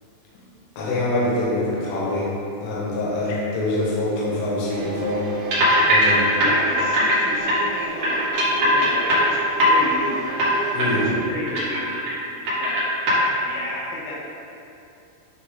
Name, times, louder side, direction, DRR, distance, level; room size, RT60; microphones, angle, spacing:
voice 1, 0.8-2.3 2.6-5.3 5.9-6.2 10.7-11.1, left 1 dB, 70° left, -6 dB, 3.1 m, -24 dB
sound 1, 4.7-11.1, right 4 dB, 90° right, 3.2 m, -34 dB
sound 2, 5.5-7.2 7.5-7.6 8.0-9.9 10.3-10.5 10.8-10.9 11.2-12.2 12.5-13.2, equal, 70° right, 1.4 m, -19 dB
voice 2, 6.2-10.2 10.8-12.0 12.2-12.9 13.4-14.2, left 1 dB, 90° left, -4 dB, 3.6 m, -33 dB
9.8 x 3.6 x 3.8 m, 2.7 s
omnidirectional pair, 5.6 m